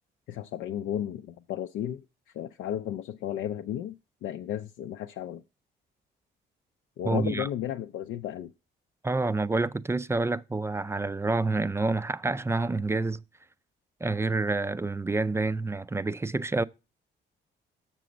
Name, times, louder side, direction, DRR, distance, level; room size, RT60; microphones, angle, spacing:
voice 1, 0.3-2.0 2.3-5.4 7.0-8.5, left 11 dB, 80° left, 0.5 m, -34 dB
voice 2, 7.0-7.5 9.0-13.2 14.0-16.6, right 3 dB, 15° right, 0.3 m, -28 dB
6.9 x 6.2 x 4.9 m
cardioid pair, 90°, 20 cm